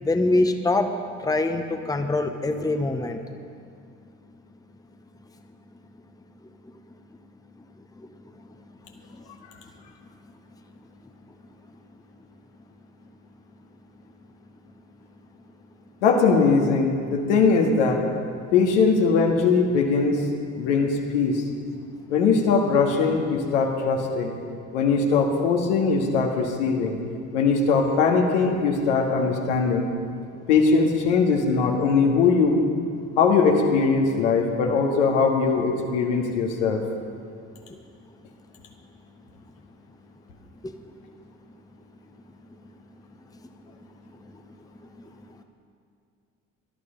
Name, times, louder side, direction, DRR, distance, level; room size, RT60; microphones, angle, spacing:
voice 1, 0.0-3.2 8.0-8.1 9.2-9.3 40.6-40.7 44.2-44.4 44.8-44.9, left 2 dB, 10° left, 6 dB, 1.0 m, -24 dB
voice 2, 16.0-18.0 18.5-20.2 20.6-21.4 22.1-24.3 24.7-27.0 27.3-29.9 30.5-32.6 33.2-36.8, left 4 dB, 70° left, 1 dB, 1.9 m, -21 dB
18.0 x 12.0 x 5.3 m, 2.3 s
figure-of-eight pair, 60°, 37 cm